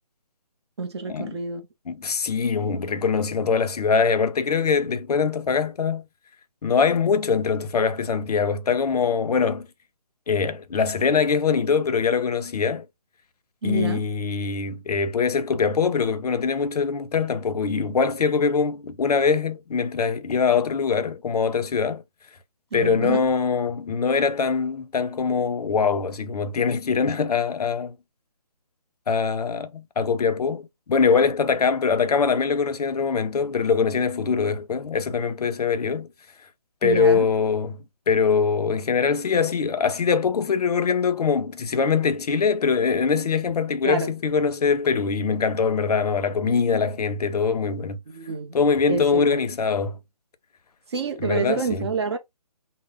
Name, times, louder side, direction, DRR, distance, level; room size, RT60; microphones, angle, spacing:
voice 1, 0.8-1.6 13.6-14.1 22.7-23.2 36.8-37.3 43.8-44.1 48.1-48.6 48.9-49.4 50.9-52.2, right 4 dB, 45° right, 0.6 m, -28 dB
voice 2, 1.9-6.0 6.6-9.7 10.3-12.8 13.6-22.0 22.7-28.0 29.1-36.1 36.8-37.8 38.1-48.0 48.5-50.0 51.2-51.9, left 5 dB, 75° left, 0.5 m, -23 dB
2.1 x 2.0 x 3.3 m
hypercardioid pair, 165°, 20 cm